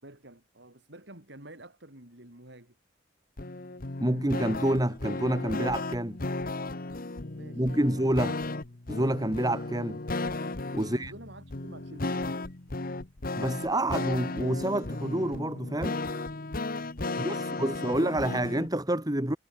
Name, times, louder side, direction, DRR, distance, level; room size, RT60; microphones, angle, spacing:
voice 1, 0.0-2.8 7.4-8.2 10.7-12.2 17.0-18.0, right 1 dB, 65° right, 5.4 m, -49 dB
sound 1, 3.4-18.7, left 2 dB, 50° left, 1.3 m, -35 dB
voice 2, 4.0-6.2 7.5-8.3 8.9-10.0 10.7-11.1 13.4-16.0 17.2-19.4, right 1 dB, 20° right, 2.2 m, -28 dB
head